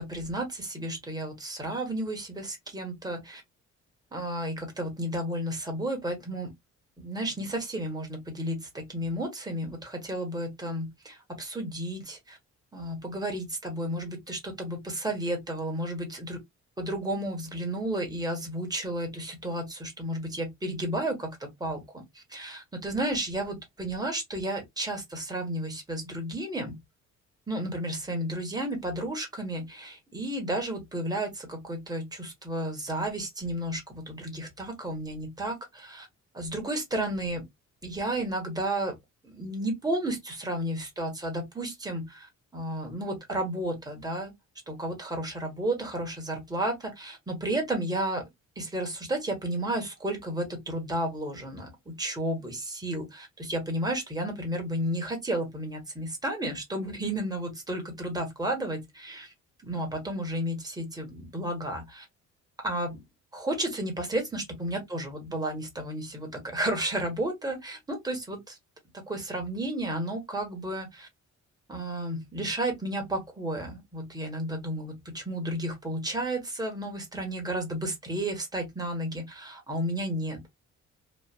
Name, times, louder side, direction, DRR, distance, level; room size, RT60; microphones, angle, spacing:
voice 1, 0.0-3.4 4.1-6.5 7.0-12.4 12.7-16.4 16.8-26.8 27.5-36.1 36.3-37.4 37.8-38.9 39.2-42.3 42.5-44.3 44.7-48.2 48.5-59.3 59.6-62.0 62.6-63.0 63.3-68.6 69.1-71.1 71.7-80.5, right 1 dB, 15° right, 1.4 m, -32 dB
3.2 x 2.4 x 2.3 m
cardioid pair, 90°, 30 cm